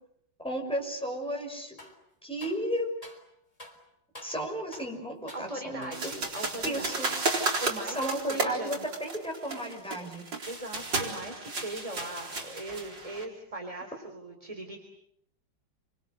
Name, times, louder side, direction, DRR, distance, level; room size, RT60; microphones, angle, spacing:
voice 1, 0.4-1.8 2.2-2.9 4.2-5.9 6.6-7.1 7.9-10.3, right 1 dB, 5° left, 1 dB, 6.2 m, -33 dB
sound 1, 1.8-2.0 2.4-3.3 3.6-3.8 4.1-4.4 4.7-5.0 5.3-5.5 5.8-7.1 7.4-7.6 8.0-8.6, left 1 dB, 20° left, 4.0 m, -48 dB
voice 2, 5.3-6.9 7.3-8.9 10.4-14.8, right 1 dB, 20° right, 4 dB, 3.4 m, -40 dB
sound 2, 5.9-13.2, right 3 dB, 85° right, 4.7 m, -33 dB
28.5 x 25.5 x 8.1 m, 0.72 s
omnidirectional pair, 2.0 m